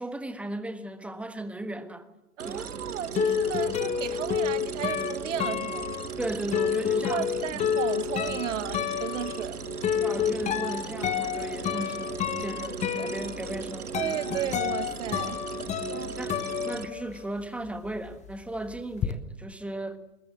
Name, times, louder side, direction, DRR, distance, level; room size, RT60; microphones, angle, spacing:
voice 1, 0.0-2.1 2.4-2.7 6.2-7.7 10.0-14.1 15.9-16.4 16.6-20.0, right 1 dB, 5° right, 1.4 m, -36 dB
voice 2, 2.4-5.9 7.1-9.6 13.9-15.4 15.9-16.1, right 10 dB, 55° right, 1.6 m, -34 dB
sound 1, 2.4-16.9, right 7 dB, 85° right, 1.1 m, -37 dB
sound 2, 2.6-17.4 17.7-19.1, left 9 dB, 15° left, 1.2 m, -30 dB
21.5 x 20.5 x 7.6 m
figure-of-eight pair, 115°, 44 cm